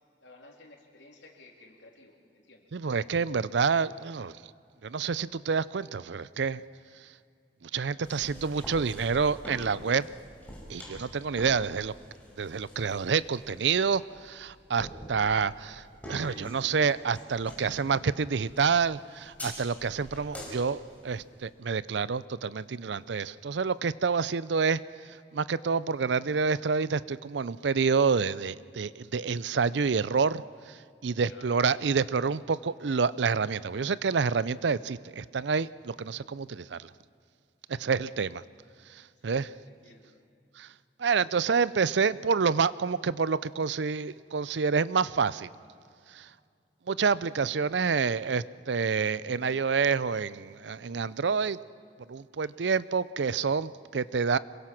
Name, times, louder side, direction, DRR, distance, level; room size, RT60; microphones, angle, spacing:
voice 1, 0.2-2.7 11.1-11.3 31.2-31.8 39.2-40.3 52.3-52.5, left 2 dB, 85° left, 1 dB, 3.3 m, -55 dB
voice 2, 2.7-4.4 4.8-6.6 7.6-10.1 10.7-11.9 12.4-24.8 25.3-30.8 31.0-36.9 37.7-38.4 38.9-39.5 40.6-40.7 41.0-45.5 46.1-46.3 46.9-51.6 52.1-54.4, right 5 dB, 75° right, 18 dB, 0.5 m, -28 dB
sound 1, 8.0-21.5, equal, 10° left, 5.2 m, -46 dB
26.0 x 22.5 x 5.9 m, 2.3 s
head